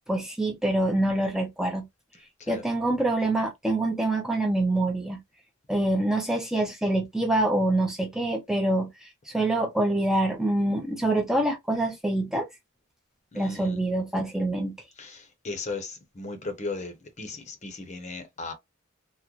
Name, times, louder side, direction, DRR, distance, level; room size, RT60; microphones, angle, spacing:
voice 1, 0.1-1.9 2.5-5.2 5.7-12.5 13.4-14.7, right 1 dB, ahead, 0.4 m, -25 dB
voice 2, 13.3-13.8 15.0-18.5, left 3 dB, 35° left, 0.7 m, -37 dB
3.7 x 2.1 x 3.0 m
head